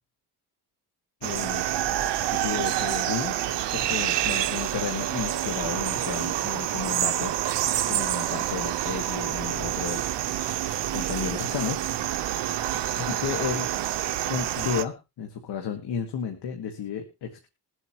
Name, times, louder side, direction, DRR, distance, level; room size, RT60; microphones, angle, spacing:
voice 1, 1.2-1.6 2.3-3.4 3.7-7.3 7.9-10.0 10.9-11.8 13.0-13.7 14.3-17.5, left 7 dB, 80° left, 5 dB, 1.9 m, -33 dB
sound 1, 1.2-14.8, right 12 dB, 85° right, 1.0 m, -28 dB
21.5 x 8.2 x 3.0 m, 0.27 s
cardioid pair, 135°, 41 cm